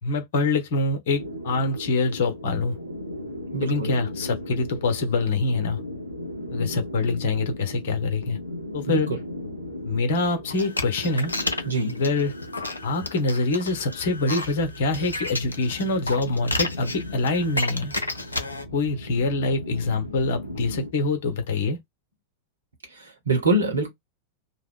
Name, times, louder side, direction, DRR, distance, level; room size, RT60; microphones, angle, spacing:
voice 1, 0.0-2.8 3.6-5.8 6.5-8.4 8.7-9.1 9.8-11.3 11.9-12.3 12.8-17.9 18.7-21.8, left 3 dB, 55° left, 1.0 m, -25 dB
sound 1, 1.1-20.9, left 1 dB, 90° right, 0.8 m, -37 dB
voice 2, 3.5-3.9 8.9-9.2 11.6-12.0 22.9-23.9, right 2 dB, 75° right, 1.2 m, -25 dB
sound 2, 10.5-18.6, left 2 dB, 80° left, 0.6 m, -32 dB
2.8 x 2.2 x 3.6 m
figure-of-eight pair, 90°, 0 cm